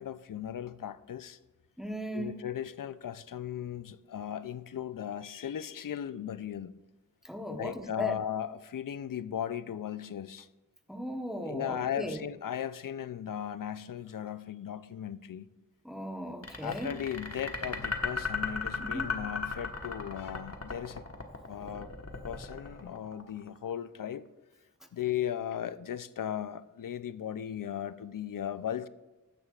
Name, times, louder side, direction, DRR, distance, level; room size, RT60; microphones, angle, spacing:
voice 1, 0.0-1.4 2.1-6.7 7.5-10.5 11.4-15.5 16.6-21.1 21.5-21.9 22.2-24.3 24.9-28.9, left 9 dB, 80° left, 0.5 m, -37 dB
voice 2, 1.8-2.4 7.2-8.1 10.9-12.2 15.8-16.9 18.8-19.1, equal, ahead, 1.0 m, -37 dB
sound 1, 16.4-23.6, left 4 dB, 50° left, 1.3 m, -36 dB
14.0 x 9.7 x 2.4 m
wide cardioid pair, 55°, 32 cm